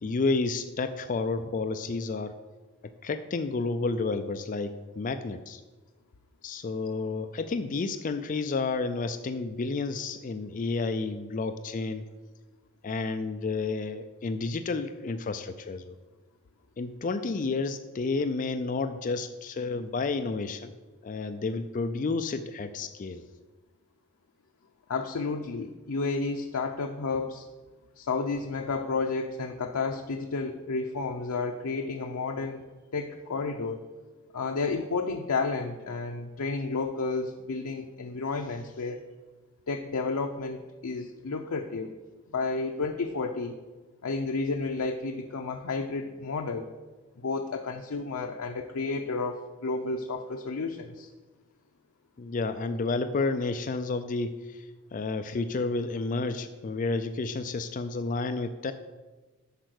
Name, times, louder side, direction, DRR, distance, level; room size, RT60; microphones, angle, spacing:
voice 1, 0.0-2.3 3.0-5.6 6.4-12.0 12.8-16.0 16.8-20.7 21.0-23.2 52.2-54.6 54.9-58.7, left 3 dB, 40° left, 10 dB, 0.4 m, -31 dB
voice 2, 24.9-27.4 28.0-32.6 32.9-33.8 34.3-39.0 39.7-41.9 42.3-43.6 44.0-46.7 47.2-51.1, left 4 dB, 85° left, 3 dB, 0.6 m, -31 dB
10.5 x 4.5 x 6.4 m, 1.3 s
head